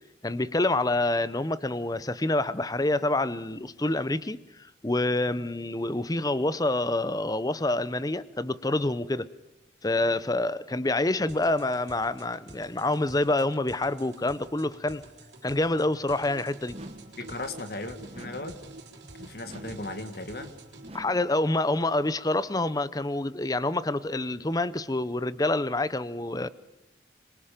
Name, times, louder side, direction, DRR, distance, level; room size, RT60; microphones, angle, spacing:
voice 1, 0.2-4.4 4.8-9.3 9.8-15.0 15.4-16.8 20.9-26.5, left 2 dB, 20° left, 0.7 m, -27 dB
sound 1, 11.3-20.9, right 2 dB, 80° right, 4.0 m, -48 dB
sound 2, 16.7-17.3 18.1-18.7 19.4-20.0 20.8-21.4, right 1 dB, 35° right, 1.3 m, -45 dB
voice 2, 17.2-18.6 19.2-20.5, left 2 dB, 55° left, 2.0 m, -37 dB
26.0 x 23.0 x 5.1 m
head